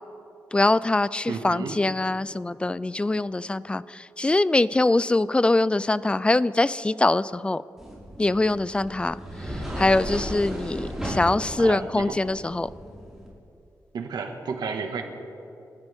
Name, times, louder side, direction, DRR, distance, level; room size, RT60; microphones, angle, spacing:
voice 1, 0.5-7.6 8.2-9.2 9.8-12.7, left 2 dB, 15° left, 18 dB, 0.3 m, -23 dB
voice 2, 1.3-1.8 11.5-12.2 13.9-15.0, right 5 dB, 85° right, 4 dB, 1.7 m, -32 dB
sound 1, 7.8-13.3, equal, 5° right, 4.9 m, -35 dB
28.5 x 13.5 x 3.6 m, 2.8 s
wide cardioid pair, 130°, 7 cm